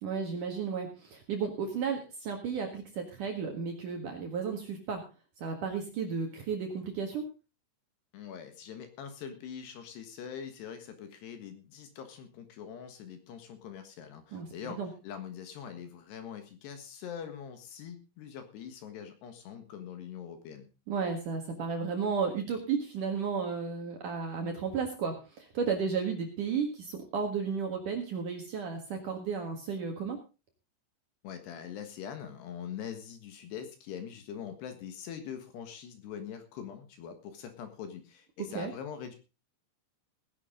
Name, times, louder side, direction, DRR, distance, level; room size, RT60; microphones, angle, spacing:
voice 1, 0.0-5.0 5.4-7.2 14.3-14.5 14.8-14.9 20.9-30.2 38.5-38.7, right 5 dB, 55° right, 3 dB, 2.5 m, -33 dB
voice 2, 8.1-20.7 31.2-39.2, left 8 dB, 65° left, 8 dB, 3.3 m, -43 dB
17.5 x 10.5 x 3.8 m, 0.30 s
omnidirectional pair, 5.6 m